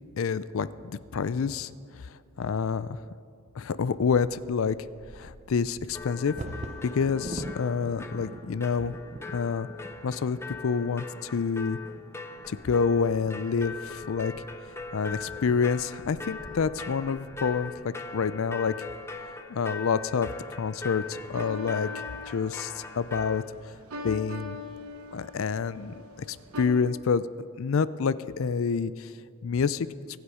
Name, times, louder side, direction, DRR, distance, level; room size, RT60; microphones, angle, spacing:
voice 1, 0.2-1.7 2.0-3.0 3.6-4.8 5.1-6.3 6.8-8.9 9.3-9.7 10.0-10.4 10.6-11.8 12.5-14.3 14.9-18.7 19.5-21.9 22.3-23.4 24.0-24.6 25.1-25.9 26.3-27.2 27.6-29.1 29.4-29.9, left 5 dB, 65° left, 16 dB, 0.4 m, -28 dB
Bird vocalization bird call bird song / Wind / Thunder, 3.9-19.8 20.5-20.6 20.9-21.3 21.8-22.3, right 1 dB, 30° right, 0.6 m, -46 dB
sound 1, 5.9-23.4, left 4 dB, 10° left, 0.6 m, -41 dB
sound 2, 21.0-26.7, left 3 dB, 85° right, 1.3 m, -42 dB
24.0 x 8.2 x 4.9 m, 2.4 s
head